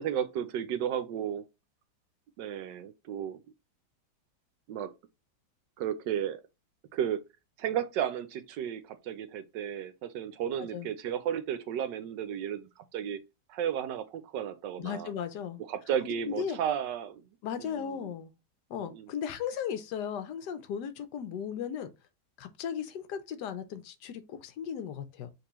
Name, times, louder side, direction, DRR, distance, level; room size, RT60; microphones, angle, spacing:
voice 1, 0.0-1.5 2.4-3.4 4.7-4.9 5.8-6.4 6.9-7.2 7.6-13.2 13.5-15.1 15.7-17.3 17.6-18.1 18.8-19.1, right 9 dB, 75° right, 1.3 m, -33 dB
voice 2, 14.8-15.6 16.0-16.6 17.4-18.3 18.7-21.9 22.4-25.3, left 8 dB, 75° left, 1.1 m, -36 dB
5.2 x 3.0 x 3.0 m
omnidirectional pair, 2.0 m